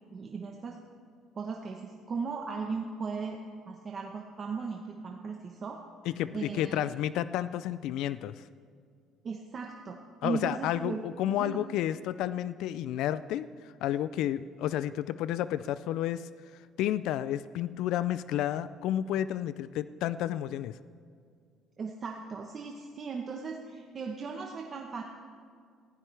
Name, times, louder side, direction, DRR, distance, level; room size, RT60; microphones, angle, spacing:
voice 1, 0.1-0.8 1.3-3.4 3.7-5.8 6.3-6.8 9.2-11.7 21.8-25.0, right 5 dB, 30° right, 1 dB, 1.0 m, -37 dB
voice 2, 6.1-8.4 10.2-16.3 16.8-20.8, left 12 dB, 75° left, 15 dB, 0.4 m, -31 dB
19.5 x 15.5 x 3.4 m, 2.2 s
cardioid pair, 145°, 0 cm